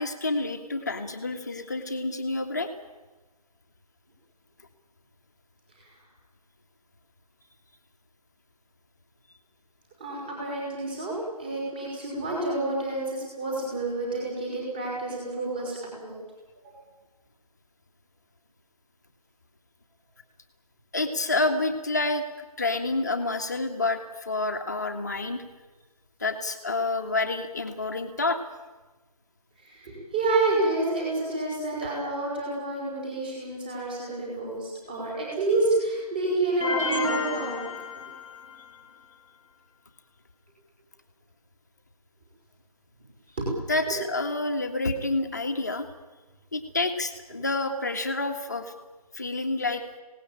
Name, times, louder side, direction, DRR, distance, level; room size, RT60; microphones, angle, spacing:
voice 1, 0.0-2.7 20.9-22.2 22.6-25.4 26.2-28.4 43.7-45.9 46.5-48.7 49.1-49.8, left 2 dB, 25° left, 6 dB, 1.8 m, -28 dB
voice 2, 10.0-16.2 16.6-16.7 29.6-37.7 43.4-43.6 43.9-44.0, right 2 dB, 15° right, -3 dB, 5.5 m, -29 dB
sound 1, 36.6-38.7, left 4 dB, 5° left, 1.4 m, -31 dB
26.0 x 18.5 x 8.9 m, 1.2 s
figure-of-eight pair, 170°, 20 cm